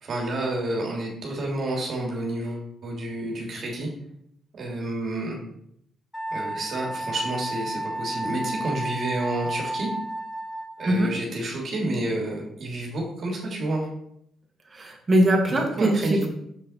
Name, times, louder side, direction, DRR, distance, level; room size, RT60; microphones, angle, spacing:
voice 1, 0.0-3.9 4.5-5.4 6.3-9.9 10.8-13.9 15.5-16.3, right 1 dB, 55° right, -1 dB, 2.1 m, -30 dB
Wind instrument woodwind instrument, 6.1-11.1, right 1 dB, 10° left, 1.6 m, -32 dB
voice 2, 14.7-16.3, right 1 dB, 30° right, 1 dB, 1.9 m, -22 dB
7.1 x 5.5 x 4.1 m, 0.73 s
cardioid pair, 90°, 0 cm